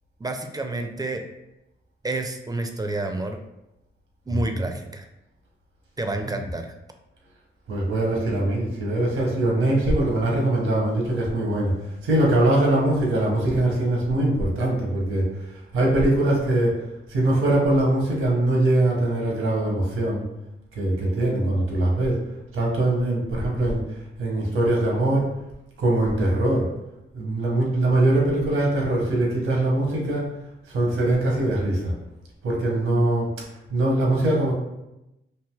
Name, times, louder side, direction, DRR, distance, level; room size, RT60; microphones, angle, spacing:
voice 1, 0.2-1.2 2.0-3.4 4.3-5.0 6.0-6.7, right 2 dB, 20° right, 5 dB, 0.4 m, -29 dB
voice 2, 4.3-4.6 6.1-6.5 7.7-11.7 12.0-15.3 15.7-16.8 17.1-20.2 20.8-22.2 22.5-23.8 24.2-25.3 25.8-26.7 27.1-30.3 30.7-31.9 32.4-33.3 33.7-34.5, right 1 dB, 85° right, -2 dB, 0.8 m, -22 dB
3.2 x 2.5 x 2.2 m, 0.91 s
cardioid pair, 55°, 21 cm